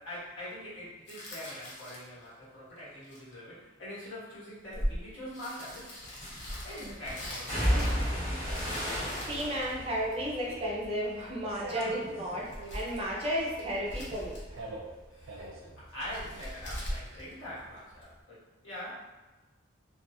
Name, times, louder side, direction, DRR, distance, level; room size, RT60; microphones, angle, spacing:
voice 1, 0.0-6.1 6.6-8.8 11.7-12.0 12.3-12.4 15.1-15.5 15.8-19.1, equal, 75° left, -9 dB, 1.2 m, -44 dB
sound 1, 1.1-2.3 2.9-3.3 4.7-4.8 5.3-8.2 8.4-10.4 12.3-13.2 13.6-14.7 16.0-18.0, equal, 60° left, 0.6 m, -42 dB
sound 2, 4.7-5.0 6.2-6.7 7.5-11.7 12.0-12.7 13.0-16.3 16.6-17.7 18.0-18.1, equal, 30° left, 1.5 m, -34 dB
voice 2, 9.1-14.4, equal, 30° right, -4 dB, 0.4 m, -33 dB
sound 3, 9.5-17.2, right 2 dB, 85° right, 0.5 m, -46 dB
2.3 x 2.3 x 2.6 m, 1.2 s
head